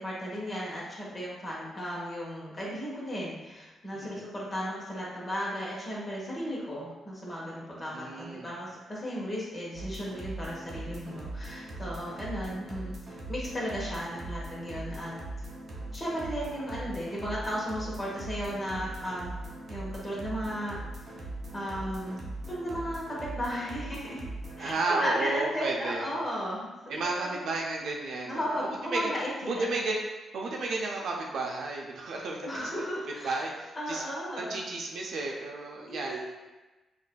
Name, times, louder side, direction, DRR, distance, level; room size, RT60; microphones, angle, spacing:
voice 1, 0.0-15.2 15.9-19.3 19.7-20.8 21.5-22.2 22.5-24.3 24.6-27.4 28.3-29.7 32.4-33.4 33.8-34.6 35.9-36.2, equal, 20° left, -5 dB, 1.1 m, -35 dB
voice 2, 3.9-4.3 7.9-8.5 24.6-26.1 26.9-29.0 29.4-30.0 30.3-32.7 33.2-34.0 34.4-36.2, right 3 dB, 65° right, -1 dB, 0.5 m, -32 dB
sound 1, 9.7-24.7, right 2 dB, 35° right, 0.8 m, -40 dB
6.3 x 2.5 x 2.2 m, 1.1 s
wide cardioid pair, 150°, 0 cm